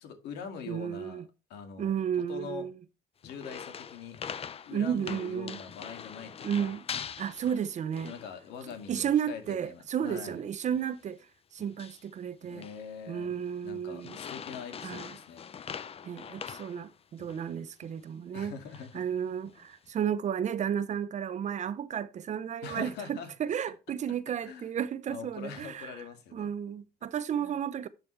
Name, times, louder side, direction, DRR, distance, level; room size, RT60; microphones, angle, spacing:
voice 1, 0.0-2.7 3.2-4.2 4.6-6.7 8.0-10.4 12.4-13.3 13.6-15.5 18.3-19.1 22.6-23.3 24.4-24.7 25.1-26.5 27.4-27.6, left 6 dB, 80° left, 2.2 m, -43 dB
voice 2, 0.7-1.2 1.8-2.7 4.7-5.6 6.4-6.8 7.2-8.1 8.9-11.2 11.5-12.7 13.1-14.2 14.8-15.1 16.0-18.5 18.9-25.9 26.3-27.9, right 8 dB, 45° right, 0.7 m, -33 dB
sound 1, 3.2-8.4 8.7-9.1 9.4-9.6 10.1-10.3 10.7-11.0 11.6-12.1 12.4-12.9 13.3-13.6 14.0-17.5 17.8-17.9 18.5-19.0 19.5-19.9, left 7 dB, 35° left, 0.6 m, -43 dB
10.5 x 5.2 x 3.2 m
cardioid pair, 110°, 17 cm